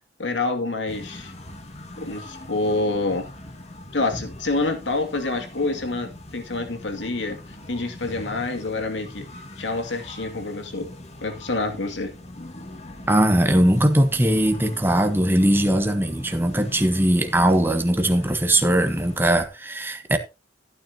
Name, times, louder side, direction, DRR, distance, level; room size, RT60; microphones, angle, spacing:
voice 1, 0.2-1.3 2.0-3.3 3.9-7.4 7.7-9.3 9.6-10.9 11.2-12.1, left 2 dB, 90° left, 2.4 m, -27 dB
sound 1, 0.9-19.5, left 1 dB, 35° left, 1.9 m, -41 dB
voice 2, 13.1-20.2, right 1 dB, 10° right, 1.2 m, -20 dB
14.5 x 9.3 x 2.8 m
head